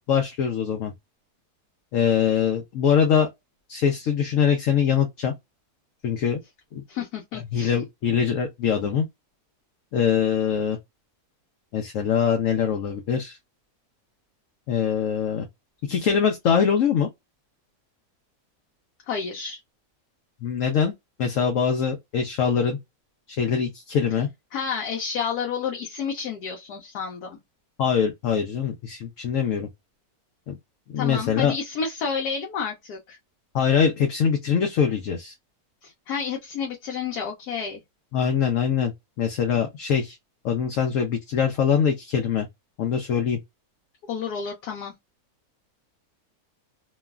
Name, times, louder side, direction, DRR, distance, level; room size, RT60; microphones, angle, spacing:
voice 1, 0.1-0.9 1.9-3.3 3.7-5.3 6.0-6.4 6.7-6.8 7.3-9.1 9.9-10.8 11.7-13.4 14.7-15.5 15.9-17.1 20.4-20.9 21.2-22.8 23.3-24.3 27.8-29.7 30.5-30.6 30.9-31.5 33.5-35.3 38.1-40.2 40.4-42.5 42.8-43.4, left 7 dB, 65° left, 0.9 m, -23 dB
voice 2, 6.9-7.7 19.1-19.6 24.5-27.4 31.0-33.2 35.8-37.8 44.1-44.9, left 6 dB, 80° left, 1.2 m, -30 dB
3.1 x 2.3 x 2.3 m
omnidirectional pair, 1.6 m